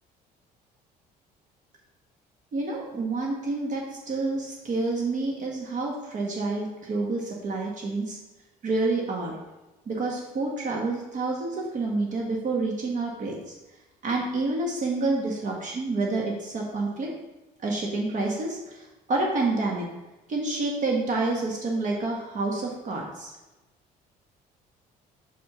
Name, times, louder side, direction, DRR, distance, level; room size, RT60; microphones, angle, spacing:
voice 1, 2.5-8.2 8.6-9.4 9.9-13.5 14.0-17.1 17.6-19.9 20.3-23.3, right 3 dB, 50° right, -1 dB, 1.2 m, -28 dB
5.4 x 4.3 x 5.5 m, 1.1 s
cardioid pair, 110°, 17 cm